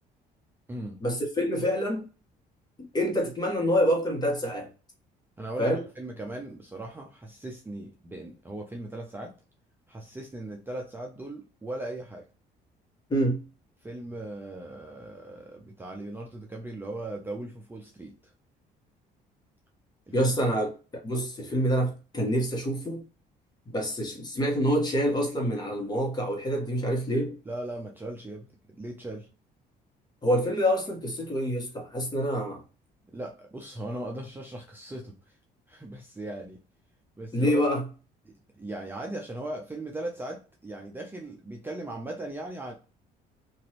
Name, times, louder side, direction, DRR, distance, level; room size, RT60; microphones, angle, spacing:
voice 1, 1.0-2.1 2.9-4.7 5.6-5.8 13.1-13.4 20.1-20.7 21.0-23.0 23.7-27.4 30.2-32.6 37.3-37.8, equal, 25° left, 1.2 m, -26 dB
voice 2, 5.4-9.3 9.9-12.2 13.8-18.3 20.1-20.5 27.5-28.5 28.8-29.3 33.1-35.3 35.7-36.6 37.2-37.6 38.2-42.7, right 1 dB, 10° right, 0.5 m, -38 dB
3.0 x 2.6 x 2.9 m
cardioid pair, 110°, 17 cm